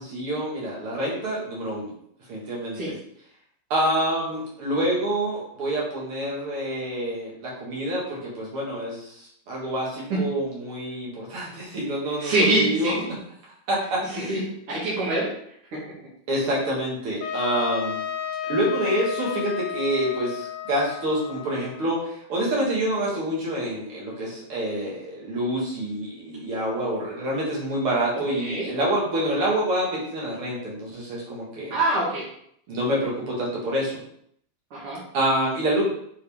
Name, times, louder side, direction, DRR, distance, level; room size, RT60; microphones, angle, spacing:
voice 1, 0.0-1.9 2.3-2.9 3.7-12.9 13.7-14.5 16.3-18.0 18.5-31.8 32.7-34.0 35.1-35.8, right 1 dB, 50° right, -5 dB, 1.7 m, -27 dB
voice 2, 12.2-13.0 14.1-14.4 14.7-15.3 15.7-15.8 28.3-28.7 31.7-32.3 34.7-35.0, right 1 dB, 85° right, -5 dB, 1.2 m, -24 dB
Trumpet, 17.2-22.0, left 9 dB, 85° left, 2.5 m, -33 dB
7.6 x 4.2 x 3.6 m, 0.69 s
omnidirectional pair, 5.2 m